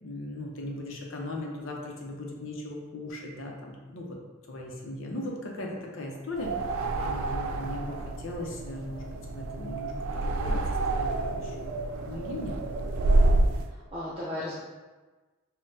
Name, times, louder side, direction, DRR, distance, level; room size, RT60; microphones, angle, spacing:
voice 1, 0.0-4.2 4.5-10.6 10.9-12.6, left 1 dB, 70° left, 0 dB, 0.7 m, -38 dB
sound 1, 6.3-13.6, right 2 dB, 85° right, 0.3 m, -28 dB
voice 2, 13.7-14.6, left 1 dB, 30° right, -9 dB, 0.6 m, -35 dB
5.5 x 2.2 x 2.7 m, 1.3 s
head